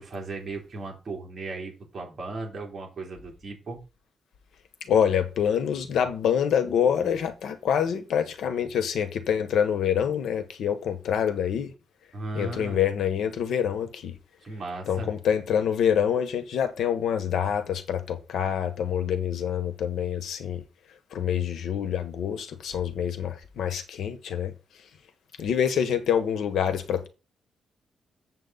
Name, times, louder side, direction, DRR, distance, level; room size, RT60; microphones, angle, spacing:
voice 1, 0.0-3.8 12.1-12.8 14.4-15.1, right 3 dB, 35° right, 3.3 m, -36 dB
voice 2, 4.9-11.7 12.3-14.2 14.9-20.6 21.1-24.5 25.4-27.1, left 8 dB, 80° left, 1.3 m, -26 dB
7.7 x 7.4 x 4.0 m
wide cardioid pair, 170°, 0 cm